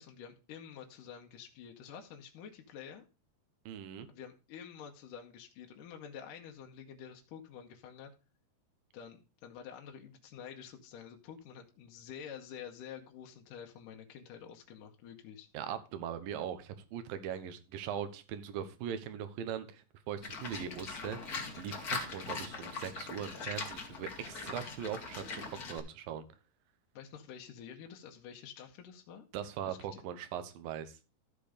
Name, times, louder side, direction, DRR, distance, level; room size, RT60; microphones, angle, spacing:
voice 1, 0.0-3.0 4.1-8.1 8.9-15.5 26.9-29.3 29.7-30.0, left 8 dB, 75° left, 3 dB, 2.5 m, -49 dB
voice 2, 3.7-4.1 15.5-26.3 29.3-31.0, right 9 dB, 80° right, 10 dB, 2.7 m, -40 dB
Livestock farm animals working animals, 20.2-25.8, left 4 dB, 50° left, 1.1 m, -41 dB
13.5 x 4.6 x 5.0 m, 0.31 s
omnidirectional pair, 4.1 m